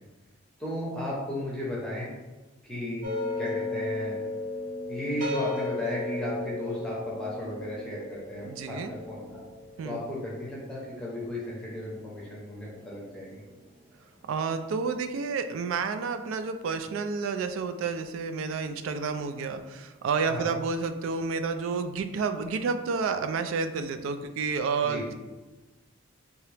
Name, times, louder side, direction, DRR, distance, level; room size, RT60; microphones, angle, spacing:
voice 1, 0.6-2.1 2.6-3.1 3.4-4.2 4.9-9.4 9.8-13.4 20.3-20.5 24.8-25.0, left 1 dB, 5° left, -6 dB, 0.8 m, -35 dB
sound 1, 3.0-12.2, left 2 dB, 45° right, 0.9 m, -35 dB
voice 2, 8.4-8.9 9.8-10.0 14.3-25.2, right 5 dB, 75° right, 9 dB, 0.3 m, -30 dB
3.6 x 2.9 x 3.3 m, 1.1 s
head